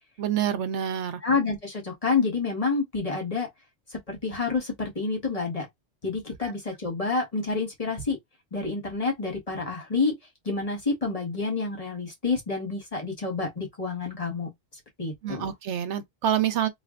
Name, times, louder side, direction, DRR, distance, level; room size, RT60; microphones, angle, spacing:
voice 1, 0.2-1.2 6.4-6.5 15.2-16.7, right 9 dB, 90° right, 1.1 m, -27 dB
voice 2, 1.2-3.5 3.9-5.7 6.0-8.2 8.5-10.1 10.4-14.5 15.0-15.5, left 4 dB, 35° left, 1.6 m, -28 dB
3.3 x 2.5 x 3.7 m
omnidirectional pair, 1.1 m